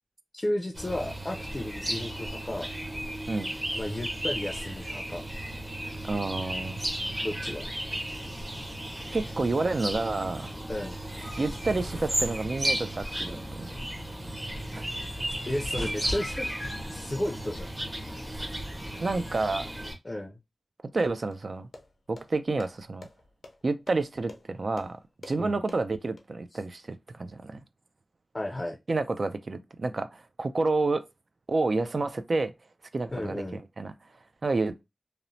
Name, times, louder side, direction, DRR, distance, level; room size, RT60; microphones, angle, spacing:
voice 1, 0.3-2.7 3.7-5.2 7.2-7.7 10.7-11.0 15.4-17.7 20.0-20.4 25.4-25.6 28.3-28.8 33.1-33.6, left 1 dB, 30° left, 0.4 m, -33 dB
sound 1, 0.7-19.9, right 1 dB, 25° right, 0.8 m, -34 dB
voice 2, 6.0-6.8 9.1-10.5 11.4-13.9 14.7-14.8 19.0-19.7 20.9-21.7 22.1-23.1 23.6-25.0 25.2-27.6 28.9-31.0 31.5-32.5 32.9-33.4 33.8-33.9 34.4-34.8, right 3 dB, 65° right, 0.3 m, -29 dB
sound 2, 13.9-19.8, equal, 85° right, 1.2 m, -43 dB
sound 3, 21.3-26.2, left 2 dB, 90° left, 0.5 m, -49 dB
2.9 x 2.0 x 2.5 m
wide cardioid pair, 65°, 0 cm